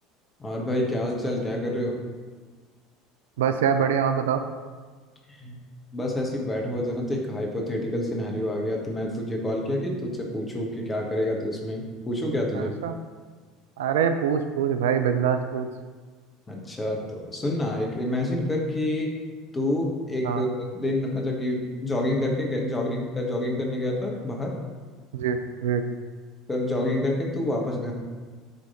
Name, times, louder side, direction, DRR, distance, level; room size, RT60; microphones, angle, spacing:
voice 1, 0.4-2.0 5.4-5.6 5.9-12.7 16.5-19.1 19.5-20.5 20.7-24.6 26.5-27.9, left 1 dB, 20° left, 0 dB, 1.2 m, -28 dB
voice 2, 3.4-4.4 12.5-13.0 13.8-15.7 20.2-20.4 25.1-25.8, right 7 dB, 65° right, 8 dB, 0.3 m, -24 dB
7.6 x 3.4 x 3.7 m, 1.4 s
figure-of-eight pair, 65°, 0 cm